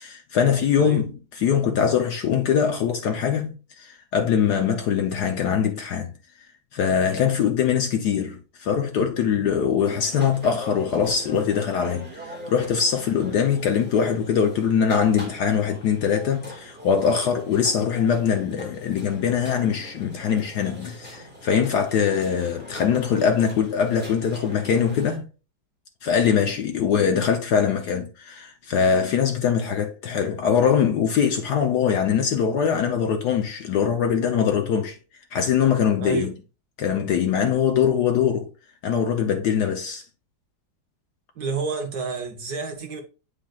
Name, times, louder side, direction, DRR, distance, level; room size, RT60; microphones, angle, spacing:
voice 1, 0.0-6.1 6.7-25.3 26.0-35.0 35.3-36.3 36.8-38.5 38.8-40.0, left 7 dB, 65° left, 1.1 m, -22 dB
voice 2, 0.7-1.0 9.3-9.4 36.0-36.3 41.4-43.0, right 5 dB, 60° right, 1.2 m, -30 dB
sound 1, 9.9-25.2, left 1 dB, 5° right, 1.6 m, -41 dB
8.8 x 5.1 x 2.3 m
omnidirectional pair, 2.2 m